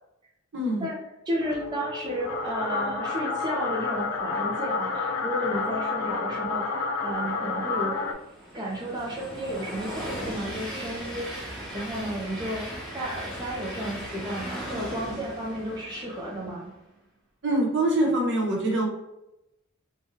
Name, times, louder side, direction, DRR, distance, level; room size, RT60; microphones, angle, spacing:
voice 1, 0.5-0.9 17.4-18.9, right 1 dB, 60° right, -1 dB, 0.9 m, -24 dB
voice 2, 1.3-6.6 7.0-8.0 8.5-12.6 12.9-16.7, equal, 20° right, -4 dB, 0.5 m, -32 dB
sound 1, 1.4-8.1, left 4 dB, 80° left, 0.4 m, -30 dB
Train, 7.3-16.7, equal, 5° left, 0.8 m, -38 dB
3.1 x 2.2 x 2.7 m, 0.89 s
head